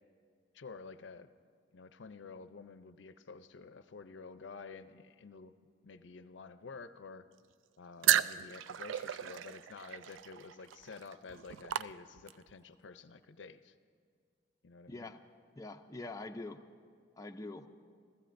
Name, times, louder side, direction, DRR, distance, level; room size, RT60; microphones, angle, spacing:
voice 1, 0.5-1.3 1.7-5.5 5.8-7.2 7.8-13.7 14.6-15.1, left 4 dB, 70° left, 11 dB, 0.5 m, -50 dB
sound 1, 8.0-12.5, right 11 dB, 80° right, 0.3 m, -34 dB
voice 2, 14.9-15.2 15.6-16.6 17.2-17.7, left 2 dB, 20° left, 4 dB, 0.4 m, -44 dB
28.0 x 15.0 x 2.6 m, 2.1 s
head